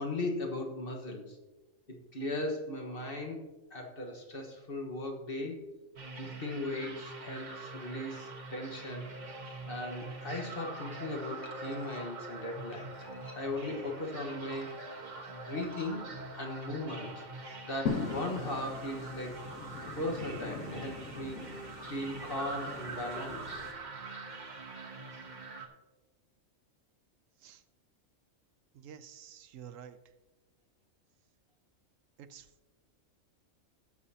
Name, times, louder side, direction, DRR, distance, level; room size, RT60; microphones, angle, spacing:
voice 1, 0.0-1.4 1.9-5.7 6.2-9.1 9.3-12.9 13.3-15.0 15.3-17.2 17.6-19.5 20.0-21.5 21.8-23.5, left 1 dB, 45° left, 2 dB, 1.5 m, -38 dB
sound 1, 6.0-25.7, right 3 dB, 40° right, 1.2 m, -44 dB
sound 2, 11.4-12.0 12.7-13.7 14.3-15.0 15.5-15.9, left 2 dB, 20° left, 1.1 m, -55 dB
sound 3, 17.9-23.7, left 5 dB, 80° left, 1.7 m, -41 dB
voice 2, 28.7-30.0 32.2-32.5, right 8 dB, 75° right, 11 dB, 1.0 m, -49 dB
18.0 x 7.0 x 2.8 m, 1.1 s
omnidirectional pair, 1.4 m